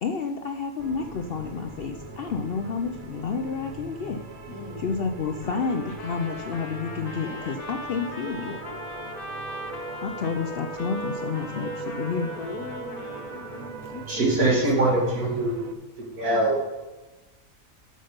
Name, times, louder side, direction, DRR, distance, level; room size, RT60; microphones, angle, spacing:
voice 1, 0.0-4.2 4.8-8.5 10.0-12.3, left 5 dB, 65° left, 5 dB, 0.6 m, -30 dB
sound 1, 0.8-15.7, right 4 dB, 45° right, 0.5 m, -39 dB
voice 2, 4.5-5.0 7.2-7.5 8.1-8.8 12.4-14.9, left 4 dB, 90° left, 7 dB, 1.4 m, -41 dB
Trumpet, 5.4-13.7, left 2 dB, 45° left, 0.9 m, -40 dB
voice 3, 14.1-15.7 16.2-16.6, right 2 dB, 90° right, -1 dB, 2.6 m, -23 dB
7.8 x 6.5 x 5.1 m, 1.1 s
omnidirectional pair, 1.5 m